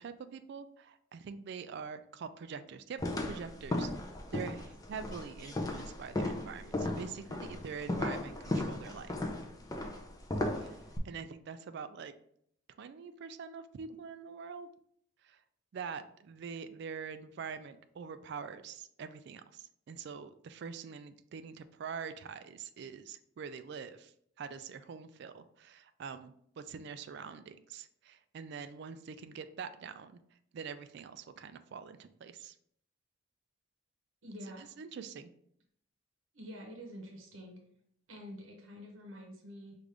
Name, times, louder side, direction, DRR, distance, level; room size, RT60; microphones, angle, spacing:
voice 1, 0.0-3.9 4.3-9.1 10.6-10.8 11.0-12.1 12.8-14.7 15.2-15.4 15.7-24.1 24.4-30.2 30.5-32.5 34.6-35.3, right 6 dB, 55° right, 11 dB, 0.3 m, -44 dB
sound 1, 3.0-11.0, left 1 dB, 20° left, 0.4 m, -36 dB
voice 2, 34.2-34.7 36.3-37.6 38.1-39.8, equal, 75° right, 1 dB, 0.9 m, -47 dB
5.0 x 2.5 x 3.3 m, 0.67 s
head